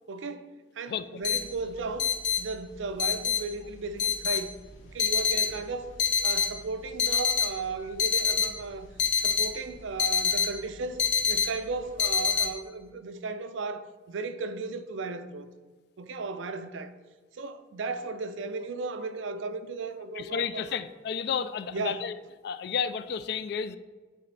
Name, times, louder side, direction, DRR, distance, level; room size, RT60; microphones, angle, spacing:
voice 1, 0.1-4.5 4.8-5.9 6.2-8.9 9.2-15.5 16.0-16.9 17.3-20.8 21.7-22.1, right 3 dB, 90° right, 0.5 m, -35 dB
sound 1, 1.2-12.5, left 6 dB, 75° left, 0.8 m, -27 dB
voice 2, 20.2-22.2 22.4-23.8, left 7 dB, 60° left, 0.3 m, -31 dB
8.2 x 4.2 x 3.3 m
head